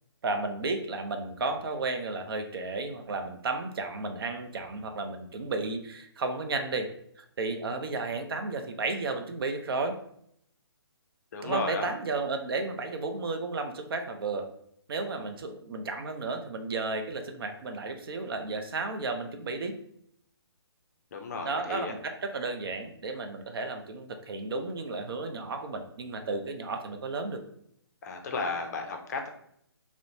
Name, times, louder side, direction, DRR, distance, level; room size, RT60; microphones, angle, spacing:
voice 1, 0.2-10.0 11.4-14.5 14.9-19.8 21.4-27.4, right 3 dB, 60° right, 5 dB, 0.4 m, -33 dB
voice 2, 11.3-11.9 21.1-21.9 28.0-29.3, left 3 dB, 40° left, 4 dB, 0.4 m, -33 dB
3.0 x 2.0 x 2.6 m, 0.70 s
hypercardioid pair, 150°, 14 cm